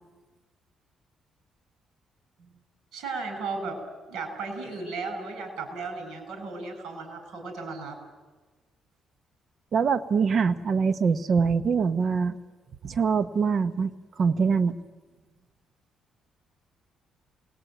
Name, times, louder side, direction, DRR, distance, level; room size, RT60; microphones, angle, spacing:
voice 1, 2.9-3.8 4.1-8.0, right 4 dB, 80° right, 7 dB, 7.2 m, -35 dB
voice 2, 9.7-12.3 12.8-14.8, right 5 dB, 55° right, 12 dB, 1.0 m, -24 dB
28.0 x 21.5 x 9.2 m, 1.3 s
cardioid pair, 90°, 0 cm